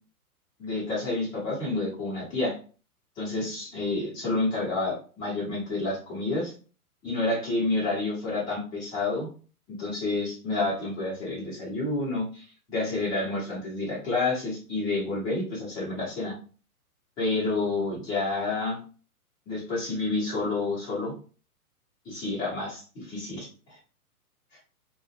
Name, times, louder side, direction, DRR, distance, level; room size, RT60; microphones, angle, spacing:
voice 1, 0.6-2.5 3.2-6.5 7.0-9.3 9.8-16.3 17.2-18.8 19.5-21.1 22.1-23.5, left 2 dB, 10° left, -6 dB, 0.5 m, -29 dB
2.5 x 2.1 x 2.4 m, 0.38 s
figure-of-eight pair, 115°, 45 cm